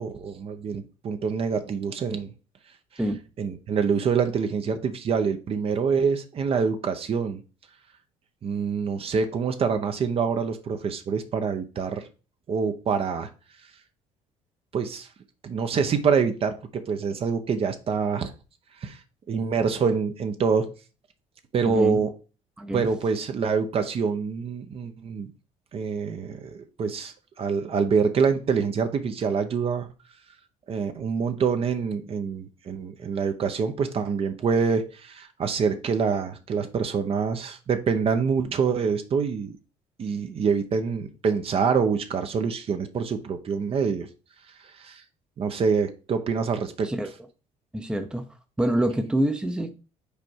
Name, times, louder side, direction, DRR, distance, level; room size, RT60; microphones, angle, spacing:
voice 1, 0.0-2.3 3.4-7.4 8.4-12.1 12.5-13.3 14.7-15.1 15.4-18.3 18.8-19.0 19.3-20.7 21.5-22.1 22.7-25.3 25.7-29.9 30.7-39.5 40.0-44.1 44.8-45.0 45.4-46.9, right 5 dB, 45° right, 0.9 m, -26 dB
voice 2, 21.7-22.0 22.6-22.9 46.8-47.1 47.7-48.2 48.6-49.7, right 1 dB, 5° right, 0.7 m, -26 dB
5.2 x 4.3 x 4.6 m
cardioid pair, 100°, 13 cm